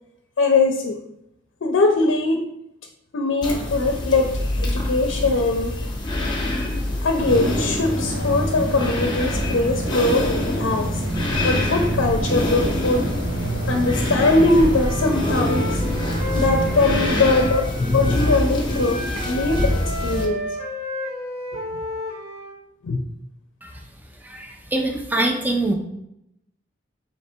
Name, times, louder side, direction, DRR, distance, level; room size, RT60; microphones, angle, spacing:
voice 1, 0.4-1.0 1.6-2.4 3.1-4.3 4.6-5.8 7.0-11.0 11.4-13.1 13.7-15.8 16.3-20.4 22.8-23.0, left 2 dB, 75° left, 2 dB, 0.5 m, -21 dB
sound 1, 3.4-20.2, left 1 dB, 25° left, 0.8 m, -26 dB
sound 2, 7.2-17.5, right 1 dB, 65° right, 1.2 m, -27 dB
Wind instrument woodwind instrument, 14.8-18.4 18.7-22.6, left 1 dB, 40° right, 1.5 m, -32 dB
voice 2, 24.2-25.7, right 2 dB, 10° right, 2 dB, 0.5 m, -24 dB
3.3 x 3.0 x 4.3 m, 0.83 s
head